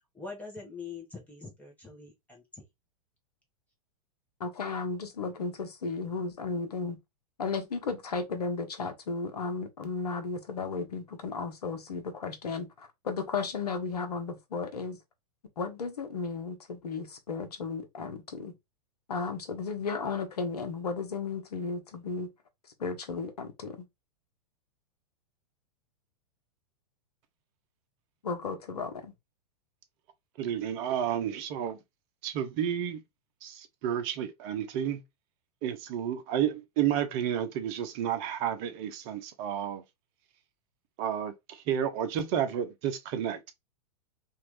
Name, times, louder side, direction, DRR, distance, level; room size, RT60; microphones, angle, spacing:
voice 1, 0.1-2.6, left 4 dB, 5° left, 1.3 m, -44 dB
voice 2, 4.4-7.0 7.4-15.0 15.6-18.5 19.1-22.3 22.8-23.9 28.2-29.1, left 4 dB, 80° left, 0.9 m, -34 dB
voice 3, 30.4-31.8 32.2-33.0 33.4-35.0 35.6-39.8 41.0-43.5, right 9 dB, 45° right, 0.8 m, -31 dB
3.0 x 2.6 x 3.0 m
hypercardioid pair, 110°, 20 cm